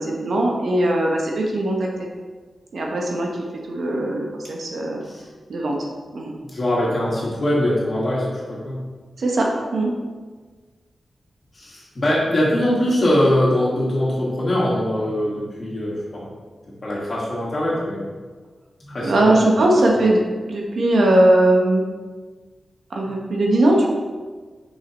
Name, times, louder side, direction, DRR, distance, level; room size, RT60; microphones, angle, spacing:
voice 1, 0.0-2.1 2.7-3.3 3.7-4.2 4.5-5.0 5.5-5.7 6.1-6.3 9.2-9.9 19.0-20.2 20.5-21.8 22.9-23.9, right 1 dB, 65° right, -1 dB, 1.0 m, -19 dB
voice 2, 6.4-8.8 11.5-16.3 16.8-18.0 18.8-19.5 19.9-20.0, left 1 dB, 35° left, -5 dB, 1.8 m, -22 dB
6.3 x 5.6 x 3.1 m, 1.4 s
wide cardioid pair, 175°, 0 cm